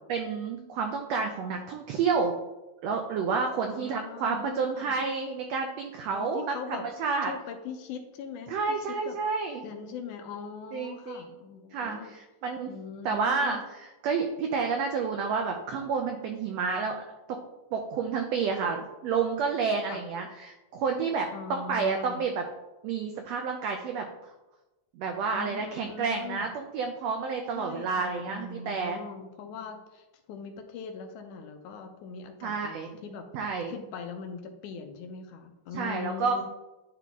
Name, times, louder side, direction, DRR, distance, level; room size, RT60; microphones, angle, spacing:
voice 1, 0.1-2.3 2.8-7.3 8.5-9.6 10.7-11.2 11.7-12.7 13.0-17.0 17.3-17.4 17.7-22.4 22.8-24.1 25.0-29.0 32.4-32.9 33.3-33.7 35.7-36.4, right 5 dB, 85° right, 4 dB, 1.4 m, -30 dB
voice 2, 3.7-5.0 6.1-6.9 7.2-8.8 9.1-9.2 9.6-12.1 12.7-13.6 19.9-20.0 21.3-22.2 25.3-26.5 27.5-33.3 33.7-36.4, left 6 dB, 80° left, 6 dB, 2.1 m, -41 dB
10.0 x 3.9 x 3.5 m, 1.0 s
omnidirectional pair, 3.7 m